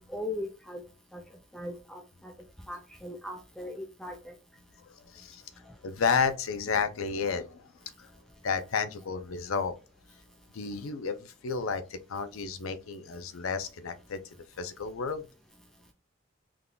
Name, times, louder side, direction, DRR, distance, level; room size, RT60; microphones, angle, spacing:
voice 1, 0.1-0.8 1.1-1.2 1.5-2.3 2.7-4.3, left 1 dB, ahead, 0.4 m, -39 dB
voice 2, 4.8-5.4 5.8-7.6 8.0-8.1 8.4-9.8 10.5-14.2 14.6-15.3, left 5 dB, 85° left, 0.5 m, -31 dB
3.5 x 2.3 x 3.7 m
head